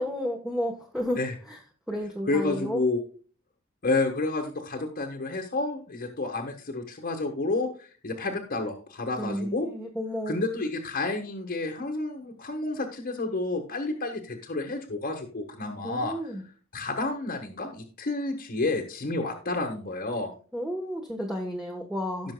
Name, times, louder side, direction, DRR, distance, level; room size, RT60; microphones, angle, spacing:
voice 1, 0.0-1.2 1.5-1.6 1.9-2.8 9.2-10.4 15.8-16.4 20.5-22.3, equal, ahead, 0 dB, 1.2 m, -32 dB
voice 2, 2.3-3.0 3.8-9.7 10.3-16.1 16.7-20.3, left 2 dB, 45° left, 1 dB, 1.4 m, -30 dB
17.5 x 6.2 x 2.3 m, 0.40 s
head